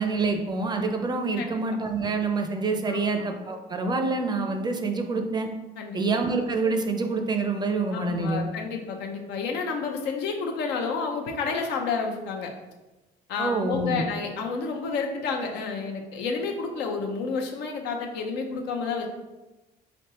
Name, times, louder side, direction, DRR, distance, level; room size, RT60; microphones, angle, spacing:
voice 1, 0.0-5.5 5.9-8.4 13.4-14.0, right 3 dB, 25° right, 4 dB, 0.5 m, -26 dB
voice 2, 2.9-3.2 5.8-6.0 7.9-12.5 13.3-19.1, left 4 dB, 85° left, 2 dB, 0.7 m, -30 dB
3.9 x 3.4 x 2.9 m, 1.1 s
cardioid pair, 110°, 17 cm